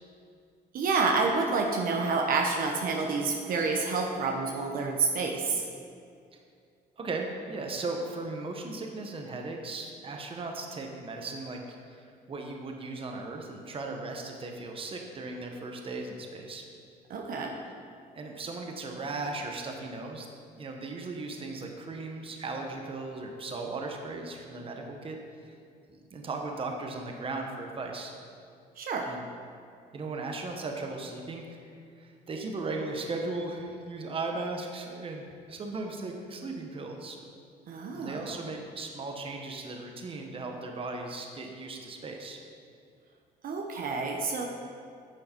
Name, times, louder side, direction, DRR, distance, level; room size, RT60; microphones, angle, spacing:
voice 1, 0.7-5.6 17.1-17.5 28.8-29.1 37.7-38.4 43.4-44.4, right 4 dB, 55° right, 1 dB, 0.9 m, -28 dB
voice 2, 7.0-16.6 18.1-20.3 20.6-25.2 25.4-25.5 25.9-28.1 29.1-29.2 29.9-31.7 32.0-37.2 37.9-42.4, right 3 dB, 35° right, 2 dB, 1.1 m, -37 dB
9.9 x 6.4 x 4.5 m, 2.4 s
cardioid pair, 110°, 17 cm